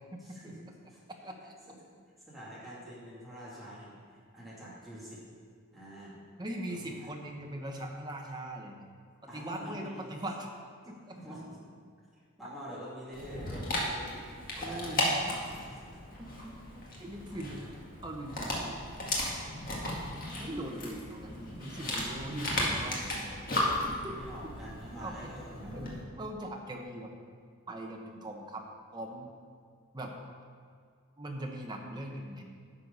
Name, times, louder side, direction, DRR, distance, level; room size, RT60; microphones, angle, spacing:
voice 1, 0.2-1.0 1.7-1.8 2.3-5.2 5.7-6.2 6.9-7.1 9.3-10.1 11.1-11.6 12.1-14.2 14.6-15.4 15.6-16.0 17.3-17.7 24.1-25.9, equal, ahead, -9 dB, 2.7 m, -46 dB
voice 2, 6.4-8.9 9.3-10.5 10.9-11.2 14.1-15.6 16.2-17.6 18.0-18.9 20.3-23.4 23.8-24.5 25.0-25.3 25.6-27.1 27.7-28.6 28.9-29.3 29.9-30.1 31.2-32.4, right 1 dB, 20° right, 1 dB, 1.0 m, -41 dB
Dog, 13.1-26.0, left 1 dB, 40° left, 1.9 m, -35 dB
11.0 x 6.6 x 5.5 m, 2.1 s
head